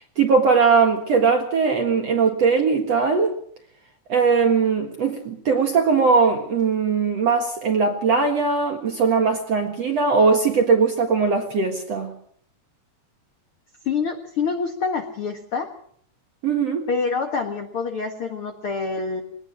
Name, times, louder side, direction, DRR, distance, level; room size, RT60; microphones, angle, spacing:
voice 1, 0.2-3.4 4.1-12.1 16.4-16.9, right 5 dB, 50° right, 4 dB, 2.2 m, -20 dB
voice 2, 13.8-15.7 16.9-19.2, left 5 dB, 50° left, 5 dB, 1.7 m, -26 dB
22.5 x 19.0 x 6.3 m, 0.63 s
omnidirectional pair, 4.7 m